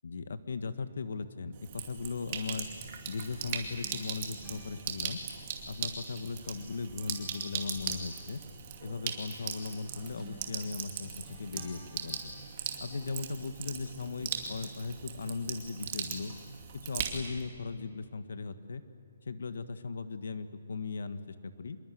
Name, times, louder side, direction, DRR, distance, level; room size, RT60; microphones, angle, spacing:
voice 1, 0.0-2.7 3.1-5.2 5.7-8.4 8.8-11.1 11.4-12.3 12.8-16.3 16.9-18.8 19.2-21.8, left 4 dB, 70° left, 11 dB, 1.6 m, -38 dB
Sink (filling or washing), 1.5-17.5, right 7 dB, 30° right, 2.4 m, -39 dB
sound 1, 2.7-6.2 6.4-12.8, right 2 dB, 10° right, 2.6 m, -57 dB
26.0 x 22.0 x 9.6 m, 2.3 s
hypercardioid pair, 175°, 0 cm